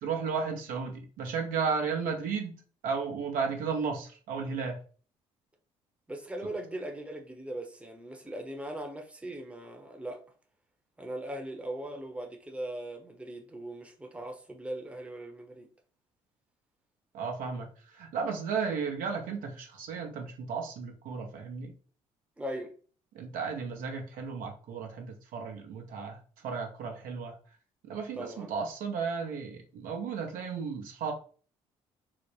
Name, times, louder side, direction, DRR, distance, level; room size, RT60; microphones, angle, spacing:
voice 1, 0.0-2.6 2.8-4.8 6.4-6.5 17.1-21.7 23.1-27.4 27.8-31.1, right 5 dB, 75° right, 0.8 m, -34 dB
voice 2, 6.1-10.2 11.0-15.7 22.4-22.7 28.2-28.5, right 1 dB, 10° right, 0.8 m, -39 dB
3.9 x 2.0 x 3.1 m
hypercardioid pair, 55°, 14 cm